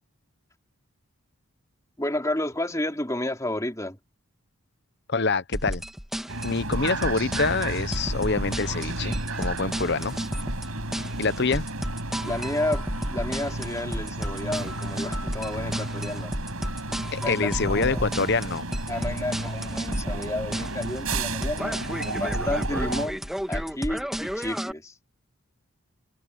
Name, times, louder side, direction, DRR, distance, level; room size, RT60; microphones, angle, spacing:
voice 1, 2.0-4.0 12.2-16.3 17.2-18.1 18.9-21.8 22.0-24.9, left 1 dB, 15° left, 3.6 m, -31 dB
voice 2, 5.1-5.8 6.4-10.2 11.2-11.6 17.1-18.6, left 4 dB, 50° left, 1.0 m, -26 dB
sound 1, 5.5-24.7, equal, ahead, 2.1 m, -32 dB
sound 2, 6.3-23.1, right 2 dB, 80° right, 6.3 m, -33 dB
head